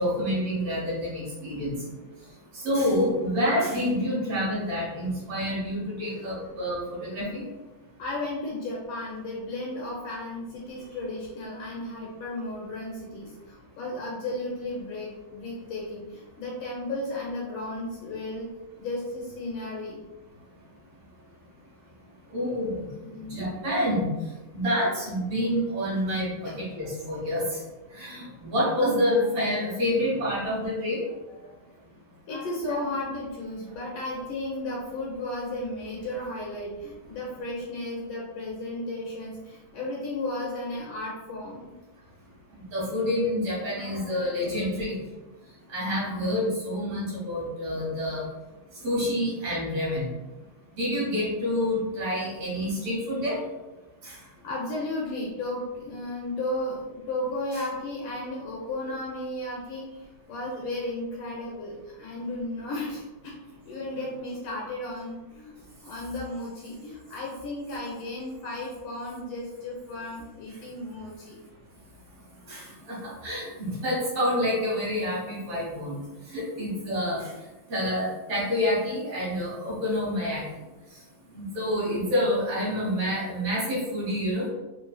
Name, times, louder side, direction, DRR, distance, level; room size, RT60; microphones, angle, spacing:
voice 1, 0.0-1.8 2.5-7.4 22.3-22.9 23.3-24.1 24.5-27.6 27.9-31.0 42.5-44.9 45.7-48.2 48.8-50.1 50.8-53.4 54.0-54.2 72.5-76.0 76.3-77.3 77.7-80.4 81.3-84.5, left 1 dB, 55° right, -7 dB, 2.0 m, -28 dB
voice 2, 4.9-5.4 6.1-6.3 6.8-6.9 8.0-18.5 18.8-20.0 23.0-23.4 26.4-26.9 27.9-28.5 30.0-30.1 31.4-31.6 32.3-41.7 43.6-44.5 54.2-63.3 63.6-65.5 65.8-71.4, left 1 dB, 75° left, -4 dB, 1.4 m, -34 dB
5.1 x 3.2 x 2.2 m, 1.1 s
omnidirectional pair, 3.7 m